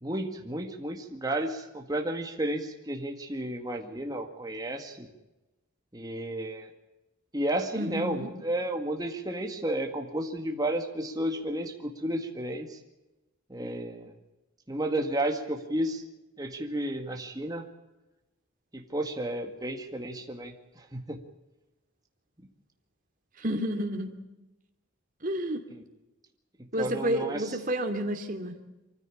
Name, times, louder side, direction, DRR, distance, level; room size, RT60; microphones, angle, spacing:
voice 1, 0.0-5.1 5.9-6.7 7.3-12.8 13.5-14.1 14.7-16.0 16.4-17.6 18.7-21.2 25.7-25.8 26.8-27.5, right 1 dB, 20° right, 3 dB, 1.9 m, -32 dB
voice 2, 7.7-8.3 23.4-24.2 25.2-25.6 26.7-28.5, right 1 dB, 40° right, 5 dB, 2.7 m, -30 dB
24.5 x 15.0 x 8.5 m, 1.0 s
head